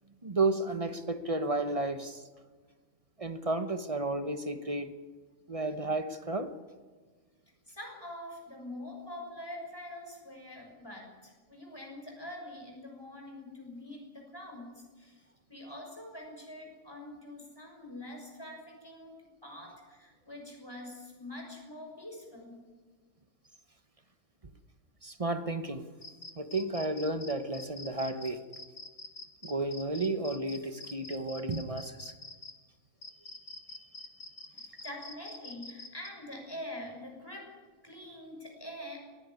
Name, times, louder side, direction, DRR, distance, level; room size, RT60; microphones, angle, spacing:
voice 1, 0.2-2.2 3.2-4.9 5.5-6.6 25.0-25.8 26.4-28.4 29.4-32.1, right 2 dB, 30° right, 9 dB, 1.0 m, -32 dB
voice 2, 7.7-19.1 19.4-22.6 34.5-37.5 37.8-39.0, left 1 dB, 15° left, 1 dB, 6.1 m, -45 dB
sound 1, 26.0-32.5 33.0-36.1, left 2 dB, 65° left, 2.4 m, -46 dB
19.5 x 16.0 x 9.6 m, 1.4 s
omnidirectional pair, 1.4 m